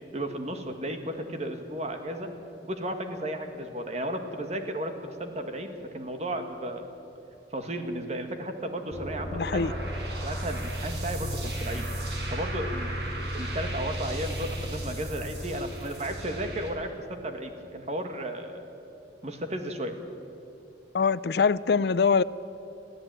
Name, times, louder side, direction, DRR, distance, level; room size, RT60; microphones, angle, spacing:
voice 1, 0.1-2.3 2.7-6.9 7.5-9.8 10.2-11.9 12.3-18.6 19.2-19.9, right 1 dB, 40° right, 6 dB, 1.8 m, -34 dB
sound 1, 8.9-16.7, right 1 dB, 75° right, 4.4 m, -34 dB
voice 2, 9.3-9.7 20.9-22.2, left 5 dB, 65° left, 18 dB, 0.4 m, -23 dB
22.5 x 15.0 x 9.0 m, 2.8 s
head